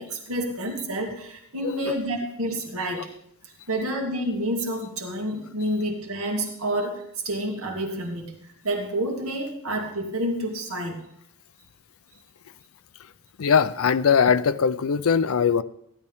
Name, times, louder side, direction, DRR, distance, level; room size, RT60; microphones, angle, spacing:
voice 1, 0.0-3.1 3.4-11.0, right 1 dB, 75° right, 1 dB, 2.2 m, -29 dB
voice 2, 13.4-15.6, left 6 dB, 70° left, 15 dB, 0.5 m, -20 dB
15.5 x 11.5 x 3.6 m, 0.74 s
head